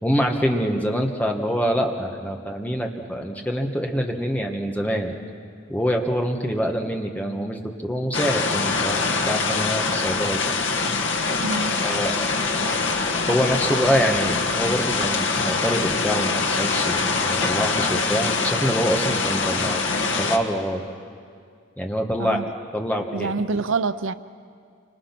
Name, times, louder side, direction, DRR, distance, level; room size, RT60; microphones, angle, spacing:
voice 1, 0.0-5.2 5.7-10.8 11.8-12.1 13.3-19.8 20.2-20.8 21.8-22.4 22.7-23.3, equal, 10° left, 2 dB, 1.6 m, -25 dB
sound 1, 8.1-20.4, left 4 dB, 75° left, 1.6 m, -24 dB
voice 2, 11.4-11.8 22.2-22.5 23.1-24.1, right 4 dB, 85° right, 14 dB, 0.6 m, -26 dB
28.5 x 25.5 x 6.1 m, 2.2 s
head